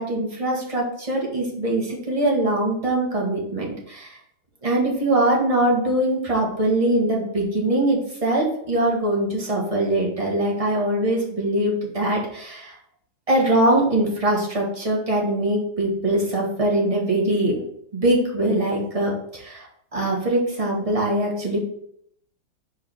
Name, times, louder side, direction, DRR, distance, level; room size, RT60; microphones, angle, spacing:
voice 1, 0.0-4.2 4.6-12.8 13.3-17.6 17.9-19.7 19.9-21.6, right 1 dB, 20° right, -3 dB, 1.3 m, -22 dB
4.9 x 4.7 x 4.5 m, 0.70 s
omnidirectional pair, 2.2 m